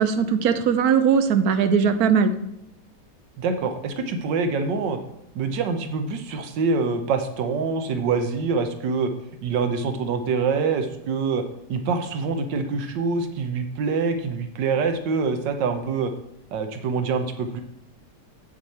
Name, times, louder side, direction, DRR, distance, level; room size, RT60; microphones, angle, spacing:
voice 1, 0.0-2.3, right 6 dB, 65° right, 9 dB, 1.1 m, -19 dB
voice 2, 3.4-5.0 5.3-9.1 9.4-11.4 11.7-16.1 16.5-17.6, right 4 dB, 90° right, 7 dB, 1.5 m, -25 dB
7.9 x 6.9 x 4.2 m, 0.82 s
omnidirectional pair, 1.9 m